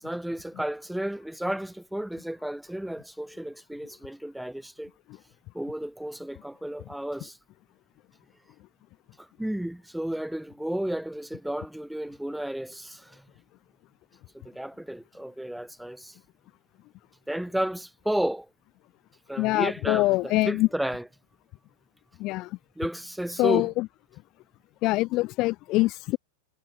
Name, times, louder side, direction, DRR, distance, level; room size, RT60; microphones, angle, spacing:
voice 1, 0.0-4.9 5.5-7.4 9.4-13.2 14.5-16.1 17.3-18.5 19.3-21.1 22.8-23.7, right 1 dB, ahead, 7.1 m, -32 dB
voice 2, 19.4-20.7 22.2-22.6 23.4-23.9 24.8-26.2, left 20 dB, 40° left, 1.0 m, -24 dB
figure-of-eight pair, 90°, 0 cm